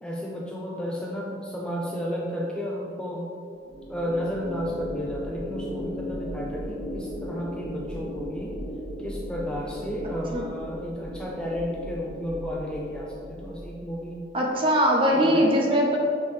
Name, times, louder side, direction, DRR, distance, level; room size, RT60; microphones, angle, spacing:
voice 1, 0.0-3.3 3.9-8.6 9.0-14.3 15.1-15.5, equal, 5° left, -3 dB, 0.5 m, -32 dB
sound 1, 3.6-14.1, equal, 70° right, 1.3 m, -36 dB
voice 2, 14.3-16.0, equal, 30° right, -1 dB, 0.9 m, -21 dB
6.1 x 5.2 x 3.3 m, 2.6 s
head